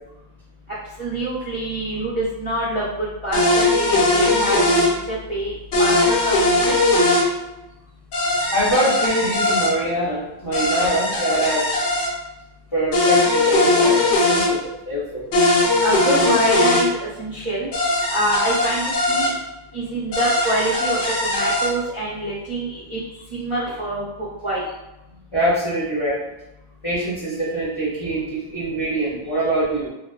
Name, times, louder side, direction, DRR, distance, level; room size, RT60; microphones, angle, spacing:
voice 1, 1.0-4.7 5.1-5.5 5.8-6.7 15.8-17.7 18.1-19.3 19.7-23.0 23.3-24.6, right 1 dB, 55° right, -9 dB, 0.3 m, -25 dB
sound 1, 3.3-4.9 5.7-7.3 8.1-9.7 10.5-12.1 12.9-14.5 15.3-16.8 17.7-19.3 20.1-21.7, left 2 dB, 65° left, 0.8 m, -19 dB
voice 2, 8.5-11.6 12.7-15.2 25.3-26.2 26.8-29.9, right 1 dB, 35° left, -9 dB, 0.5 m, -23 dB
2.4 x 2.3 x 2.3 m, 0.94 s
omnidirectional pair, 1.4 m